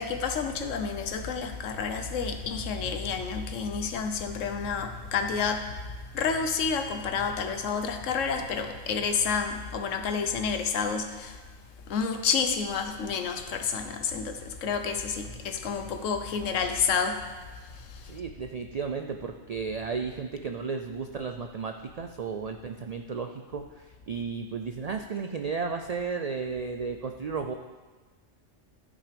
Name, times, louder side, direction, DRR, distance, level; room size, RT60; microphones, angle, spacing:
voice 1, 0.0-11.4 11.9-17.3 17.5-18.2, left 5 dB, 80° left, 7 dB, 1.2 m, -30 dB
voice 2, 18.0-27.5, right 5 dB, 85° right, 5 dB, 0.3 m, -34 dB
12.0 x 6.1 x 5.1 m, 1.4 s
omnidirectional pair, 1.3 m